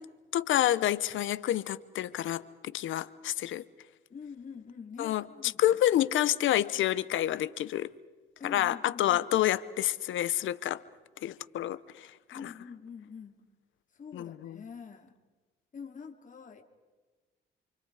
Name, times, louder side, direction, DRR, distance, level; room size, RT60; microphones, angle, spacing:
voice 1, 0.3-3.6 5.0-5.2 5.6-7.9 8.4-10.8 11.2-12.4 14.1-14.6, left 13 dB, 80° left, 17 dB, 1.0 m, -28 dB
voice 2, 4.1-5.8 8.4-9.2 12.3-13.4 13.9-15.2 15.7-16.6, left 6 dB, 40° left, 3 dB, 3.4 m, -45 dB
28.5 x 26.5 x 5.0 m, 1.3 s
cardioid pair, 90°, 20 cm